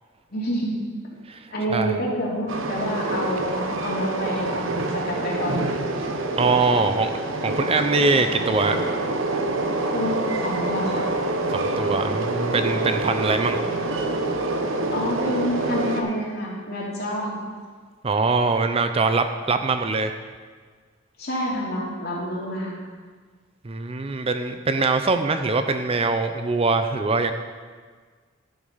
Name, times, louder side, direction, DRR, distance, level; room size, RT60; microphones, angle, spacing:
voice 1, 0.3-0.8 1.5-5.6 9.9-11.1 14.9-17.4 21.2-22.8, equal, 50° left, -4 dB, 3.0 m, -28 dB
Train, 2.5-16.0, right 2 dB, 80° right, 1.0 m, -26 dB
voice 2, 6.4-8.8 11.5-13.6 18.0-20.1 23.6-27.3, right 3 dB, 30° right, 8 dB, 0.5 m, -23 dB
12.0 x 8.0 x 5.6 m, 1.5 s
head